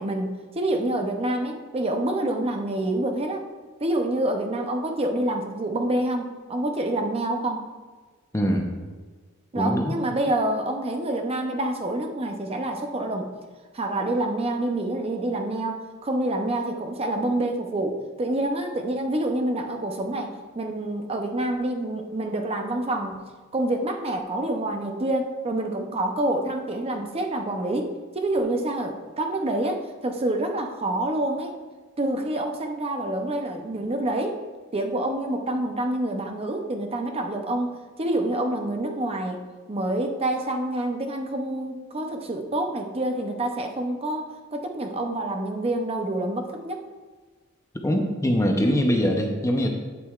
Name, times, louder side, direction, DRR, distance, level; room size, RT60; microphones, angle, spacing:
voice 1, 0.0-3.5 3.8-7.6 9.5-13.3 13.7-31.5 32.0-34.4 34.7-37.7 38.0-39.4 39.7-46.8, right 1 dB, 30° right, 4 dB, 0.6 m, -27 dB
voice 2, 8.3-8.7 9.6-10.0 47.8-49.7, equal, 15° left, 2 dB, 0.6 m, -22 dB
8.3 x 7.4 x 2.4 m, 1.4 s
head